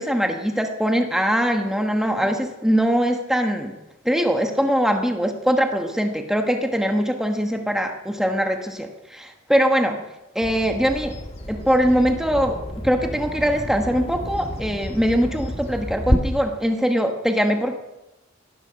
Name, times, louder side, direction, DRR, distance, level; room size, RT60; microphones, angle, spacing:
voice 1, 0.0-3.7 4.0-10.0 10.3-11.1 11.5-12.6 12.8-17.8, equal, ahead, 4 dB, 1.2 m, -22 dB
Bird vocalization bird call bird song, 10.4-16.2, equal, 30° left, 1.7 m, -29 dB
18.0 x 11.5 x 5.8 m, 0.98 s
head